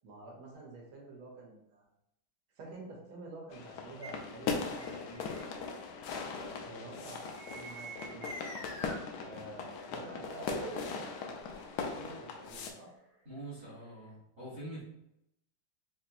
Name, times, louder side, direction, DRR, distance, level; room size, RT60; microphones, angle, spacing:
voice 1, 0.0-1.8 2.6-5.8 6.4-8.3 9.2-11.4 11.9-12.9, right 2 dB, 75° right, -1 dB, 1.8 m, -49 dB
sound 1, 3.5-12.7, left 5 dB, 80° left, 0.9 m, -39 dB
sound 2, 4.0-4.1 4.8-5.4 7.4-9.0 9.8-9.9 10.2-11.6 12.8-14.1, right 1 dB, 60° left, 0.4 m, -45 dB
voice 2, 13.2-14.8, right 1 dB, 30° right, -10 dB, 1.2 m, -44 dB
4.2 x 2.9 x 2.6 m, 0.83 s
omnidirectional pair, 2.3 m